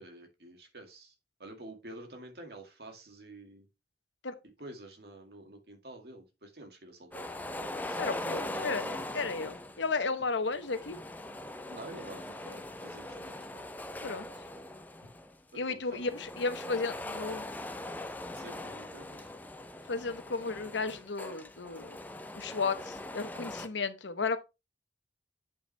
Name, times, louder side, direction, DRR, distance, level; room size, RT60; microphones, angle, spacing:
voice 1, 0.0-3.7 4.6-9.1 11.7-13.7 15.5-16.0 18.3-19.3, right 2 dB, 60° right, 2.0 m, -49 dB
sound 1, 7.1-9.9 10.5-15.3 16.0-23.7, left 1 dB, 10° left, 0.5 m, -41 dB
voice 2, 8.0-11.0 14.0-14.3 15.5-17.5 19.9-22.0 22.3-24.4, left 4 dB, 85° left, 1.0 m, -34 dB
8.5 x 5.6 x 3.3 m
head